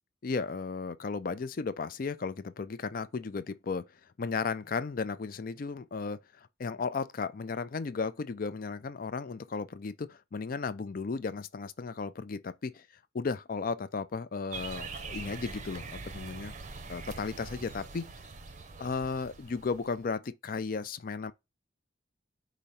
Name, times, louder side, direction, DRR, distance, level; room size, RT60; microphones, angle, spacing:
voice 1, 0.2-3.9 4.2-12.9 13.1-16.5 16.9-18.1 18.8-21.3, left 4 dB, 45° left, 0.4 m, -35 dB
sound 1, 14.5-20.0, right 4 dB, 40° right, 0.6 m, -43 dB
5.0 x 2.0 x 4.1 m
head